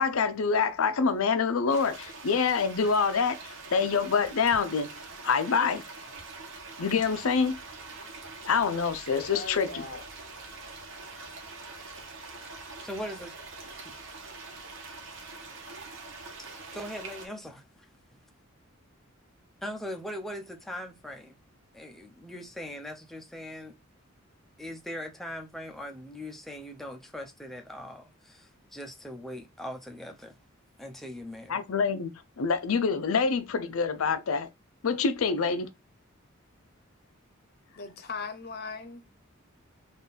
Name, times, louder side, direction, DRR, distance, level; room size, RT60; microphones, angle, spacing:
voice 1, 0.0-4.9 5.2-5.8 6.8-7.6 8.5-9.9 31.5-32.1 32.4-34.5 34.8-35.7, left 5 dB, 90° left, 0.6 m, -26 dB
sound 1, 1.7-17.3, right 3 dB, 65° right, 1.2 m, -44 dB
voice 2, 9.3-10.0 37.8-39.0, left 4 dB, 50° left, 0.8 m, -39 dB
voice 3, 12.8-13.3 13.8-13.9 16.6-17.7 19.6-21.4 21.7-23.7 24.6-30.4 30.8-31.6, equal, ahead, 0.6 m, -40 dB
3.7 x 2.5 x 4.0 m
head